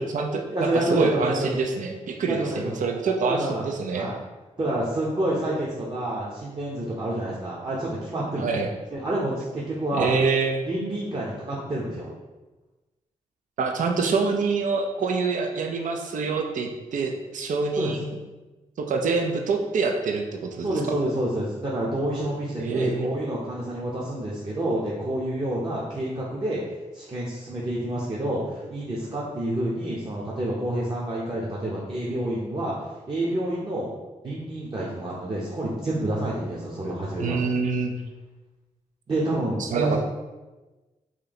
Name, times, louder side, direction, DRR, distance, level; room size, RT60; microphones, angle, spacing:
voice 1, 0.0-4.1 8.4-8.7 9.9-10.6 13.6-18.2 18.8-21.0 22.6-23.1 37.2-38.0 39.6-40.0, right 4 dB, 65° right, 3 dB, 0.5 m, -26 dB
voice 2, 0.5-1.5 2.3-2.7 3.2-3.7 3.9-4.1 4.6-8.6 8.9-10.1 10.7-12.1 17.8-17.9 20.6-26.6 26.9-32.7 33.1-33.9 34.2-37.4 39.1-40.0, right 1 dB, 35° right, -6 dB, 0.8 m, -28 dB
3.1 x 2.7 x 3.9 m, 1.2 s
cardioid pair, 55°, 14 cm